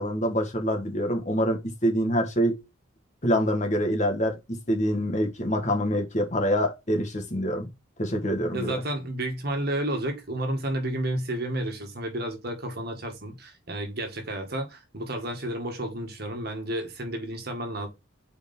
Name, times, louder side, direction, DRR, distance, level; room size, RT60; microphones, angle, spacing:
voice 1, 0.0-2.6 3.2-7.7 8.0-8.8, equal, 35° left, 1.7 m, -26 dB
voice 2, 8.5-17.9, right 1 dB, 50° right, 1.8 m, -31 dB
4.9 x 4.7 x 5.4 m
head